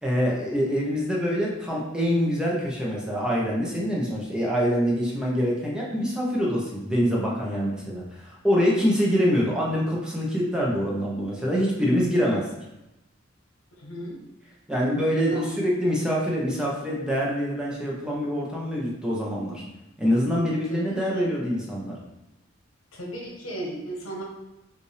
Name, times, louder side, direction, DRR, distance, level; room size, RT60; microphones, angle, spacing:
voice 1, 0.0-12.5 14.7-19.6 20.0-21.9, equal, 5° right, -4 dB, 0.8 m, -25 dB
voice 2, 13.8-14.2 15.2-15.7 20.7-21.3 22.9-24.2, right 1 dB, 90° left, -1 dB, 1.1 m, -35 dB
5.3 x 2.6 x 3.3 m, 0.95 s
head